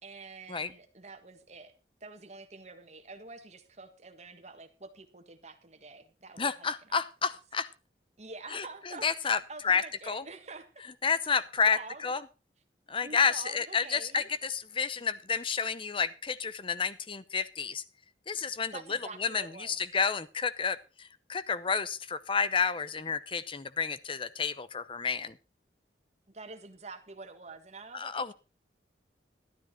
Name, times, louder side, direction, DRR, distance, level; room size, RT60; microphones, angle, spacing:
voice 1, 0.0-7.4 8.2-10.9 11.6-12.1 13.0-14.3 18.7-19.7 26.3-28.3, right 3 dB, 40° right, 6 dB, 1.6 m, -47 dB
voice 2, 6.4-7.7 8.5-9.4 9.6-10.2 11.0-11.8 12.0-12.2 12.9-17.8 18.3-25.4 27.9-28.3, left 6 dB, 30° left, 14 dB, 0.7 m, -30 dB
12.5 x 12.0 x 4.4 m, 0.32 s
head